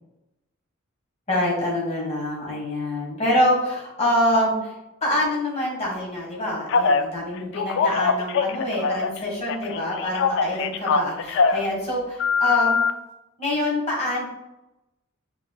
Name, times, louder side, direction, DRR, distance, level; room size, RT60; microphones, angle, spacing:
voice 1, 1.3-4.7 5.0-12.8 13.4-14.3, left 1 dB, 30° left, -3 dB, 1.4 m, -25 dB
Telephone, 6.7-7.0 7.5-9.2 9.5-11.6 12.2-12.9, left 5 dB, 60° left, 0.3 m, -22 dB
4.7 x 3.2 x 2.3 m, 0.93 s
head